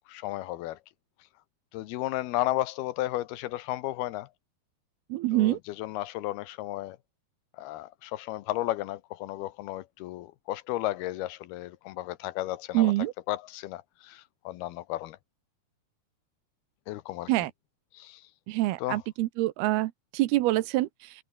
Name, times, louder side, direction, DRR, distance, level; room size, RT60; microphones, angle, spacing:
voice 1, 0.1-0.8 1.7-4.3 5.3-7.0 7.6-12.9 13.3-15.2 16.9-17.3 17.9-18.3 18.8-19.0, left 16 dB, 85° left, 2.8 m, -33 dB
voice 2, 5.1-5.6 12.7-13.1 17.3-17.5 18.5-21.1, right 17 dB, 85° right, 2.8 m, -26 dB
omnidirectional pair, 4.5 m